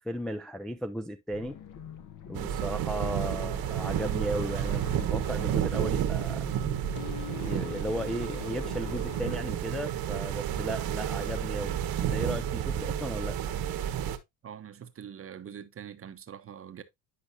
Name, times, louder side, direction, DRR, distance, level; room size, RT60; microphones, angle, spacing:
voice 1, 0.0-1.6 2.3-6.5 7.4-13.4, equal, ahead, 0.4 m, -35 dB
sound 1, 1.3-9.4, left 8 dB, 45° left, 1.1 m, -44 dB
sound 2, 2.3-14.2, right 10 dB, 55° right, 1.2 m, -31 dB
voice 2, 14.4-16.8, right 8 dB, 30° right, 0.9 m, -44 dB
10.0 x 5.1 x 2.6 m
supercardioid pair, 95°, 43 cm